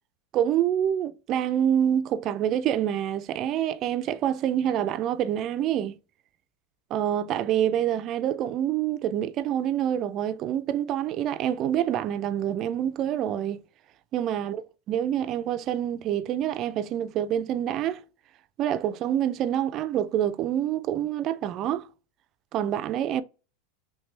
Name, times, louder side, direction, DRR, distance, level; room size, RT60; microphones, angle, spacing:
voice 1, 0.3-6.0 6.9-13.6 14.1-14.6 14.9-18.0 18.6-21.9 22.5-23.2, right 10 dB, 40° right, 0.3 m, -26 dB
3.2 x 3.1 x 3.2 m
supercardioid pair, 125°, 0 cm